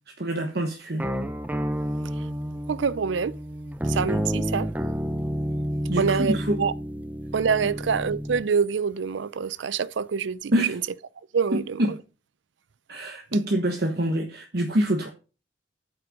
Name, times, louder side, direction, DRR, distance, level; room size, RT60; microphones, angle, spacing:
voice 1, 0.2-1.1 5.9-6.6 10.5-10.8 11.5-12.0 12.9-15.1, right 1 dB, 55° right, 1.1 m, -26 dB
sound 1, 1.0-8.4, equal, 10° right, 0.5 m, -30 dB
voice 2, 2.7-3.4 3.9-4.7 6.0-6.7 7.3-10.8 11.3-11.8, right 6 dB, 80° right, 0.5 m, -26 dB
8.7 x 7.7 x 5.2 m
head